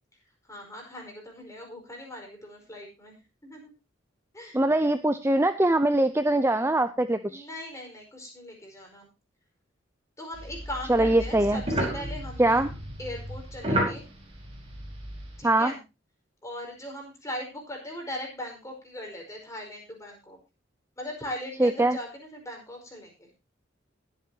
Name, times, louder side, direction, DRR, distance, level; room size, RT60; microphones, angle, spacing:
voice 1, 0.4-3.7 4.3-4.6 7.3-9.1 10.2-12.6 13.0-14.0 15.4-15.8 16.4-20.4 21.0-23.3, left 1 dB, 15° left, 1 dB, 5.0 m, -39 dB
voice 2, 4.5-7.5 10.9-11.6 12.4-12.7 15.4-15.7 21.6-22.0, right 1 dB, 10° right, 10 dB, 0.6 m, -22 dB
sound 1, 10.3-15.4, right 1 dB, 30° right, 5.0 m, -32 dB
21.5 x 8.4 x 2.9 m, 0.27 s
head